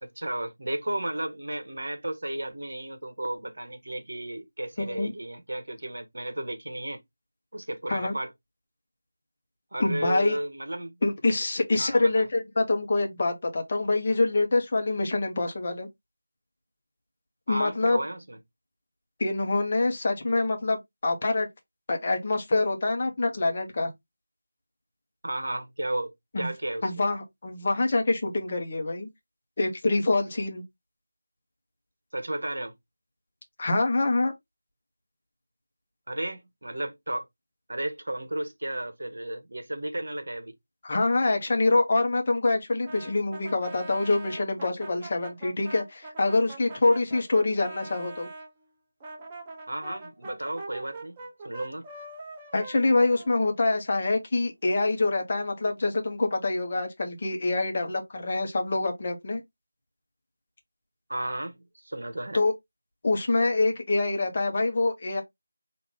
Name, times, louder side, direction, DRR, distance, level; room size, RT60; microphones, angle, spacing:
voice 1, 0.0-7.0 7.5-8.3 9.7-11.0 11.8-12.2 17.5-18.4 25.2-26.9 32.1-32.7 36.1-37.3 37.7-40.5 49.7-51.2 51.4-51.9 61.1-62.4, right 1 dB, 60° right, 1.0 m, -33 dB
voice 2, 4.8-5.1 7.9-8.1 9.8-10.4 11.0-15.9 17.5-18.0 19.2-21.5 21.9-23.9 26.3-26.5 26.8-29.1 29.6-30.6 33.6-34.3 40.8-48.3 52.5-59.4 62.3-62.5 63.0-65.2, left 2 dB, 30° left, 0.9 m, -25 dB
Brass instrument, 42.8-48.5 49.0-53.8, right 2 dB, 15° right, 0.7 m, -43 dB
4.8 x 2.5 x 3.4 m
figure-of-eight pair, 165°, 0 cm